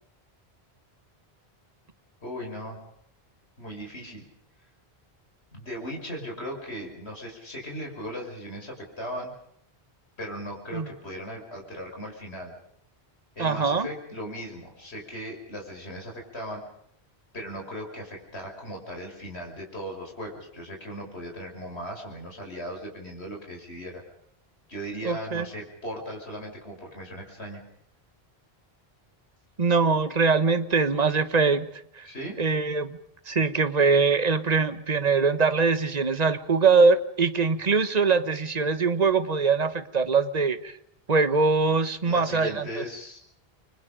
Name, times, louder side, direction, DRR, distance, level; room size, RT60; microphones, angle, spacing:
voice 1, 2.2-2.8 3.6-4.3 5.5-9.3 10.2-12.5 13.3-16.6 17.3-24.0 24.7-27.6 32.0-32.4 42.1-43.2, equal, 80° left, 1 dB, 6.1 m, -37 dB
voice 2, 13.4-13.9 25.0-25.5 29.6-31.7 32.0-32.1 32.4-33.0 33.3-40.7 41.1-42.8, right 4 dB, 40° right, 12 dB, 1.5 m, -22 dB
30.0 x 25.0 x 5.2 m, 0.70 s
omnidirectional pair, 1.1 m